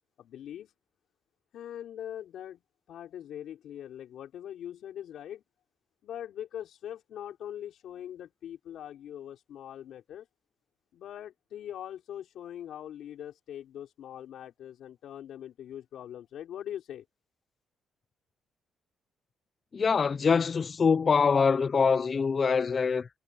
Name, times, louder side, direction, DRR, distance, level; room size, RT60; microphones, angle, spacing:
voice 1, 0.2-0.7 1.5-2.6 2.9-5.4 6.0-10.3 10.9-17.0, left 10 dB, 75° left, 4.7 m, -42 dB
voice 2, 19.7-23.1, left 5 dB, 40° left, 0.6 m, -24 dB
cardioid pair, 90°, 0 cm